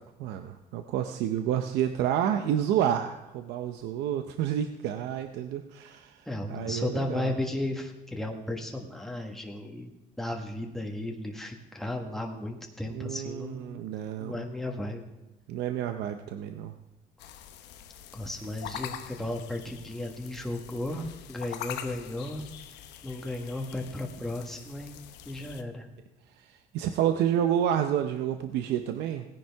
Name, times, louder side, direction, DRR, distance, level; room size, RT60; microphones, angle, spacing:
voice 1, 0.0-7.3 12.9-14.4 15.5-16.7 26.4-29.3, right 10 dB, 85° right, 7 dB, 0.7 m, -29 dB
voice 2, 6.2-9.9 10.2-13.8 14.2-15.1 18.1-22.4 23.0-25.0 25.3-25.9, left 1 dB, ahead, 1 dB, 1.4 m, -34 dB
sound 1, 17.2-25.6, left 10 dB, 85° left, 0.9 m, -44 dB
17.0 x 10.5 x 3.5 m, 1.0 s
cardioid pair, 110°, 17 cm